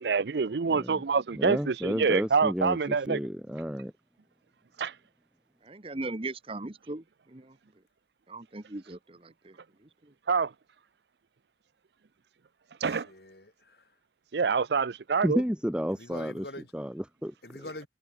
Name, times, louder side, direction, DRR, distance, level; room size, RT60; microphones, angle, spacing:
voice 1, 0.0-3.2 4.8-4.9 10.3-10.5 12.8-13.1 14.3-15.4, right 5 dB, 70° right, 0.5 m, -26 dB
voice 2, 0.7-1.0 1.3-3.9 15.2-16.5 16.7-17.7, equal, 5° right, 1.9 m, -32 dB
voice 3, 5.7-7.0 7.3-7.4 8.3-9.0, right 2 dB, 30° right, 1.1 m, -37 dB
voice 4, 12.8-13.8 15.9-16.7 17.4-17.9, left 2 dB, 60° left, 2.8 m, -44 dB
head